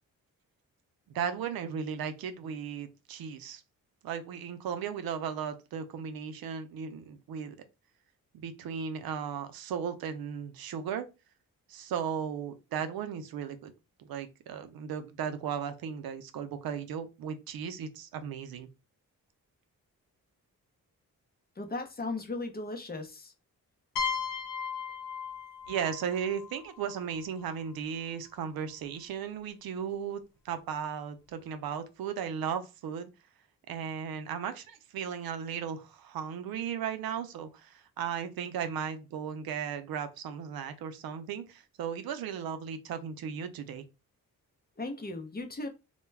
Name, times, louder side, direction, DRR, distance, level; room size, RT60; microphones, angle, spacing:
voice 1, 1.1-3.6 4.0-7.6 8.3-11.1 11.7-13.7 14.0-18.7 25.7-33.1 33.7-43.8, right 7 dB, 85° right, 0.5 m, -36 dB
voice 2, 21.6-23.3 44.8-45.7, left 2 dB, 25° left, 0.7 m, -37 dB
sound 1, 24.0-27.6, left 6 dB, 70° left, 0.6 m, -37 dB
2.2 x 2.2 x 3.2 m
cardioid pair, 65°, 35 cm